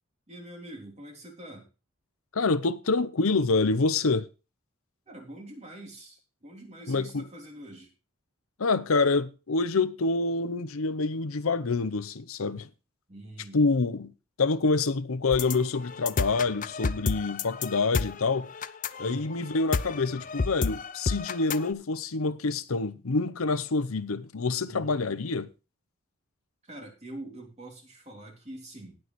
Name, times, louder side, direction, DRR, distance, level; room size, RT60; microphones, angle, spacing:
voice 1, 0.3-1.7 5.1-7.9 13.1-13.6 19.0-19.4 24.7-25.0 26.6-29.0, right 1 dB, 30° right, 3.3 m, -45 dB
voice 2, 2.3-4.3 6.9-7.2 8.6-12.7 13.5-14.1 14.4-18.5 19.0-25.5, left 3 dB, 80° left, 0.8 m, -27 dB
sound 1, 15.3-21.7, left 4 dB, 40° left, 0.5 m, -31 dB
18.5 x 6.3 x 3.1 m
head